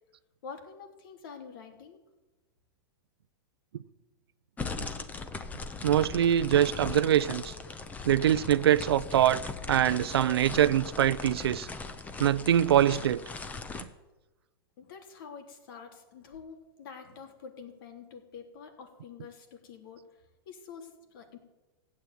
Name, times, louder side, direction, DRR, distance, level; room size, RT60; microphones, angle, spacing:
voice 1, 0.4-2.0 14.8-21.4, left 6 dB, 60° left, 3.4 m, -47 dB
sound 1, 4.6-13.8, left 4 dB, 10° left, 1.0 m, -39 dB
voice 2, 5.8-7.5 8.1-9.4 9.7-11.7 12.2-13.2 13.8-13.9, right 11 dB, 85° right, 0.7 m, -24 dB
15.5 x 8.8 x 9.4 m
hypercardioid pair, 145°, 13 cm